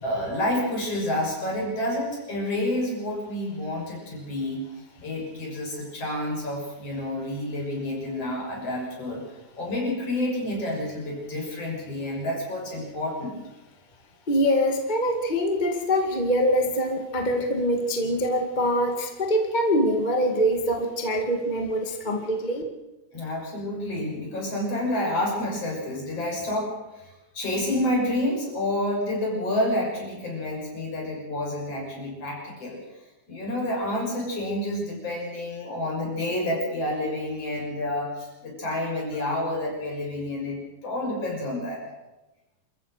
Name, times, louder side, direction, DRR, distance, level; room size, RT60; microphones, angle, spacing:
voice 1, 0.0-4.7 5.0-9.2 9.6-13.4 23.1-33.0 33.3-41.8, left 1 dB, 50° left, -1 dB, 7.3 m, -29 dB
voice 2, 14.3-22.6, equal, 20° left, 3 dB, 1.6 m, -24 dB
27.5 x 14.5 x 6.6 m, 1.0 s
omnidirectional pair, 3.5 m